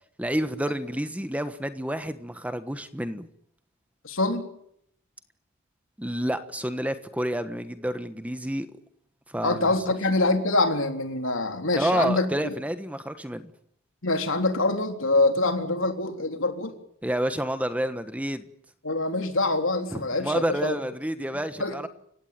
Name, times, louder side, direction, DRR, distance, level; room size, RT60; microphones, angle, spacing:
voice 1, 0.2-3.3 6.0-8.7 9.3-9.7 11.8-13.4 17.0-18.4 19.9-21.9, right 1 dB, 5° right, 10 dB, 1.3 m, -29 dB
voice 2, 4.0-4.5 9.4-12.6 14.0-16.7 18.8-20.8 21.6-21.9, left 2 dB, 70° left, 6 dB, 3.6 m, -25 dB
29.5 x 17.0 x 9.4 m, 0.72 s
head